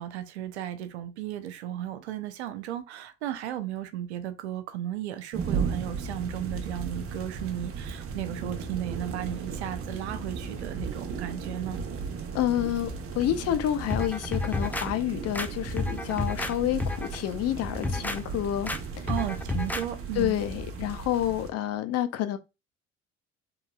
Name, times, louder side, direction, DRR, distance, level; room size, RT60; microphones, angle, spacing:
voice 1, 0.0-11.8 19.1-20.4, right 12 dB, 80° right, 0.6 m, -35 dB
sound 1, 5.3-21.5, right 5 dB, 45° right, 0.9 m, -36 dB
voice 2, 12.3-19.1 20.2-22.4, left 12 dB, 45° left, 0.6 m, -29 dB
sound 2, 13.9-14.9 15.3-16.5 16.8-17.2 17.6-18.2 18.7-18.8 19.1-19.8 20.2-20.3, left 3 dB, 5° left, 0.4 m, -31 dB
3.8 x 3.1 x 2.3 m
hypercardioid pair, 55°, 33 cm